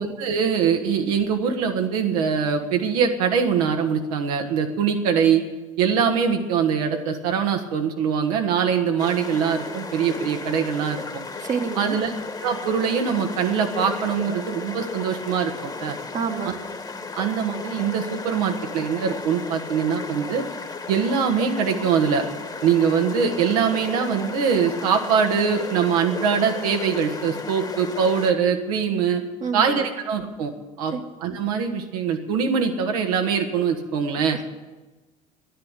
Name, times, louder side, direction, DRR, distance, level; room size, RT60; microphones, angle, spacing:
voice 1, 0.0-5.4 5.8-11.0 11.8-12.1 12.4-16.0 17.2-20.4 20.9-22.2 22.6-29.2 29.5-30.5 30.8-30.9 31.2-34.4, right 6 dB, 75° right, 4 dB, 1.6 m, -23 dB
sound 1, 9.0-28.3, left 4 dB, 20° left, 1.5 m, -35 dB
voice 2, 11.4-12.0 16.1-16.5 29.4-29.9 30.9-31.0, right 6 dB, 40° right, 2 dB, 1.5 m, -28 dB
11.0 x 10.5 x 8.3 m, 1.2 s
hypercardioid pair, 65°, 19 cm